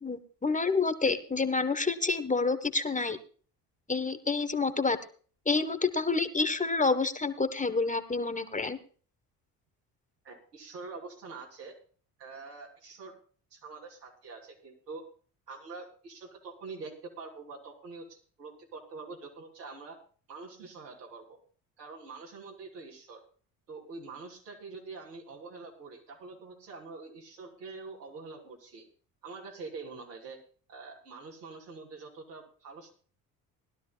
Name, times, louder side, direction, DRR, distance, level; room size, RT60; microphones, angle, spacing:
voice 1, 0.0-3.2 3.9-5.0 5.4-8.8, left 4 dB, 15° left, 10 dB, 1.4 m, -28 dB
voice 2, 10.2-11.8 12.2-13.2 13.5-15.0 15.5-20.0 20.3-21.4 21.8-23.2 23.7-28.9 29.2-30.4 30.7-32.9, right 4 dB, 90° right, -2 dB, 3.2 m, -45 dB
20.5 x 12.0 x 2.3 m, 0.41 s
hypercardioid pair, 60°, 46 cm